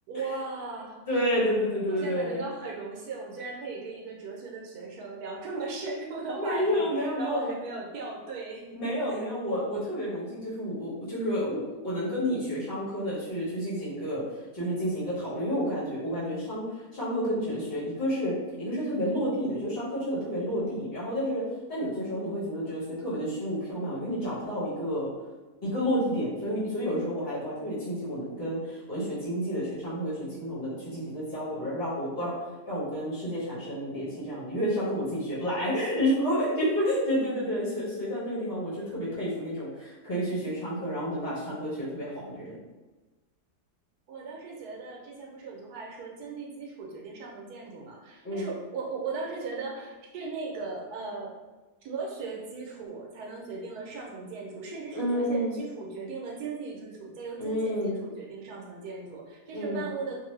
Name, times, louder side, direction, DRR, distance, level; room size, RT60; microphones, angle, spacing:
voice 1, 0.1-1.0 1.9-8.8 9.1-9.3 44.1-51.3 51.8-60.2, right 4 dB, 75° right, -1 dB, 1.1 m, -37 dB
voice 2, 1.1-2.4 6.3-7.5 8.7-14.2 14.5-21.4 21.7-25.1 25.6-32.3 32.7-42.6 48.2-48.5 54.9-55.6 57.4-58.0 59.5-59.9, equal, 45° left, -9 dB, 1.0 m, -30 dB
2.6 x 2.5 x 3.1 m, 1.2 s
omnidirectional pair, 1.7 m